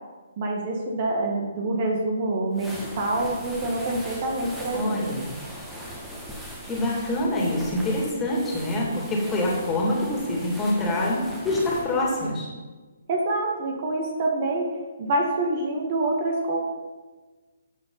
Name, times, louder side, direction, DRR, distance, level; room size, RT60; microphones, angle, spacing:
voice 1, 0.4-5.0 13.1-14.7 15.0-16.6, right 2 dB, 35° right, 0 dB, 1.8 m, -26 dB
sound 1, 2.5-12.3, equal, 5° right, 1.7 m, -39 dB
voice 2, 4.7-5.3 6.6-12.5, left 1 dB, 15° left, -3 dB, 2.8 m, -25 dB
13.0 x 7.3 x 4.2 m, 1.3 s
figure-of-eight pair, 135°, 0 cm